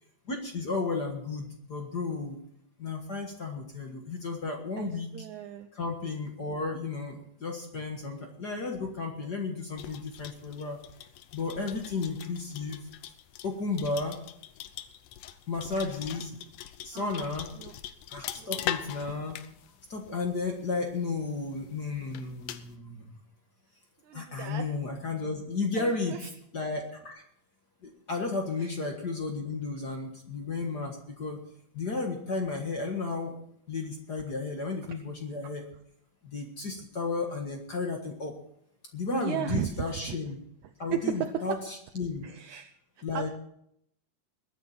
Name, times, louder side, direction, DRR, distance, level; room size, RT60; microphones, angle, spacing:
voice 1, 0.3-2.4 2.8-5.2 5.7-10.8 11.3-12.9 13.4-14.2 15.5-16.4 16.8-17.5 18.1-19.4 19.9-23.1 24.1-26.2 26.5-27.2 27.8-31.4 31.7-33.3 33.7-35.6 36.2-38.3 38.9-40.4 40.8-42.2 43.0-43.3, left 3 dB, 40° left, 2 dB, 1.6 m, -33 dB
voice 2, 4.8-5.7 16.9-17.3 17.6-17.7 18.4-19.1 24.0-24.7 25.7-26.3 28.6-28.7 35.4-35.5 39.1-40.0 40.9-41.4 42.2-42.7 43.1-43.2, right 9 dB, 75° right, 5 dB, 2.0 m, -35 dB
sound 1, 9.8-22.8, left 11 dB, 80° left, 2.3 m, -42 dB
21.5 x 9.5 x 4.4 m, 0.72 s
omnidirectional pair, 3.7 m